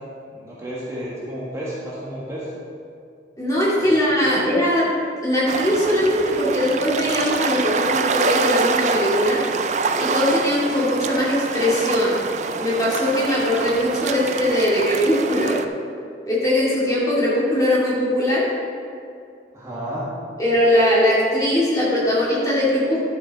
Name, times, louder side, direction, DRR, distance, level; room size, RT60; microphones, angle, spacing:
voice 1, 0.3-2.5 3.8-4.4 19.5-20.2, equal, 15° right, -8 dB, 1.5 m, -32 dB
voice 2, 3.4-4.8 5.2-9.4 10.0-12.2 12.6-15.6 16.3-18.5 20.4-23.0, left 1 dB, 20° left, -7 dB, 2.4 m, -20 dB
sound 1, 5.5-15.7, right 4 dB, 40° right, 0.4 m, -25 dB
11.5 x 7.2 x 4.1 m, 2.4 s
head